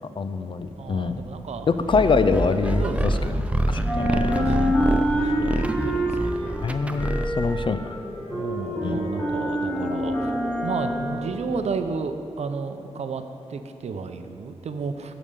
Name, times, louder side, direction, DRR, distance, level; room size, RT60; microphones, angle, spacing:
voice 1, 0.2-1.2 1.7-3.4 3.7-4.3 4.6-4.8 6.6-7.9 8.8-9.0, left 4 dB, 45° left, 11 dB, 0.4 m, -24 dB
sound 1, 0.6-3.5 3.7-11.9, equal, 15° left, 1.5 m, -27 dB
voice 2, 0.8-1.7 2.8-6.6 8.3-10.3 10.6-13.2 13.5-15.1, right 5 dB, 70° right, 7 dB, 0.6 m, -33 dB
sound 2, 1.9-7.6, right 1 dB, 10° right, 0.4 m, -26 dB
sound 3, 7.6-11.9, left 1 dB, 30° left, 0.9 m, -38 dB
8.8 x 5.0 x 6.7 m, 2.7 s
wide cardioid pair, 90°, 11 cm